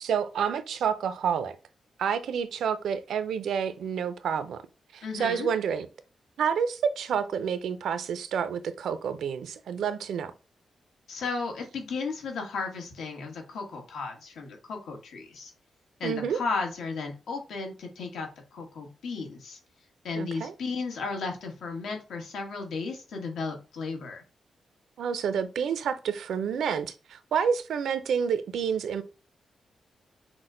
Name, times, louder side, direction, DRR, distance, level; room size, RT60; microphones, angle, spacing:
voice 1, 0.0-1.6 2.0-4.6 4.9-5.9 6.4-10.3 16.0-16.4 20.2-20.5 25.0-29.0, right 7 dB, 80° right, 0.5 m, -29 dB
voice 2, 5.0-5.5 11.1-15.5 16.0-19.6 20.0-24.2, left 4 dB, 80° left, 1.3 m, -34 dB
6.0 x 2.2 x 3.8 m
wide cardioid pair, 165°, 0 cm